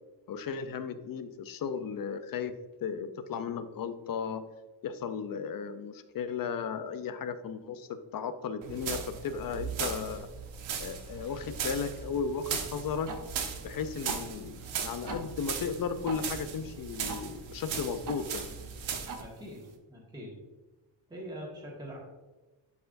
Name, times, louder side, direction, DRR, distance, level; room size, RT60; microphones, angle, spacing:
voice 1, 0.3-4.4 4.8-10.3 10.8-13.1 13.6-18.5, left 6 dB, 45° left, 11 dB, 0.6 m, -35 dB
sound 1, 8.6-19.2, right 6 dB, 75° right, 1.1 m, -38 dB
sound 2, 12.4-19.8, right 5 dB, 40° right, 0.9 m, -46 dB
voice 2, 19.2-20.4 21.1-22.0, equal, 10° right, -3 dB, 1.6 m, -43 dB
10.5 x 4.7 x 2.6 m, 1.2 s
cardioid pair, 120°, 47 cm